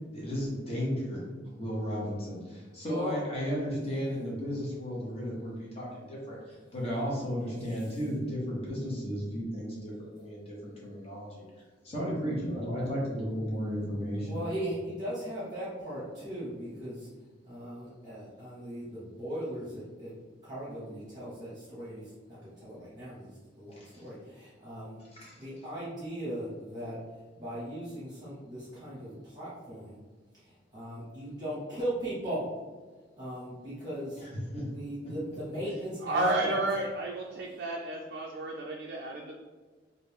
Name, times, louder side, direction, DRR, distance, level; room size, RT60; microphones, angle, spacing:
voice 1, 0.1-1.2 1.6-11.4 11.8-14.4 23.8-24.0 25.1-25.4 34.5-34.6, equal, 35° left, -5 dB, 1.1 m, -34 dB
voice 2, 14.2-17.1 17.4-20.1 20.4-25.0 25.4-27.0 27.4-30.0 30.3-32.5 33.2-34.2 34.7-36.5, equal, 20° right, -10 dB, 1.0 m, -38 dB
voice 3, 36.0-39.4, right 2 dB, 55° right, -1 dB, 0.3 m, -31 dB
3.2 x 2.5 x 3.4 m, 1.4 s
head